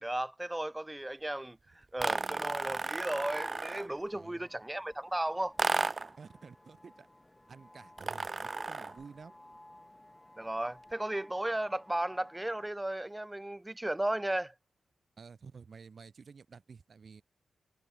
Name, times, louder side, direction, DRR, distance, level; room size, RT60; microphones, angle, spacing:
voice 1, 0.0-5.6 10.4-14.5, right 1 dB, 10° right, 0.7 m, -35 dB
sound 1, 2.0-4.0 5.6-6.2 8.0-9.0, right 3 dB, 30° right, 1.5 m, -33 dB
sound 2, 3.0-12.7, left 1 dB, 10° left, 5.6 m, -57 dB
voice 2, 4.1-4.5 6.2-7.1 7.5-9.3 15.2-17.2, right 5 dB, 45° right, 5.5 m, -51 dB
wide cardioid pair, 125°, 0 cm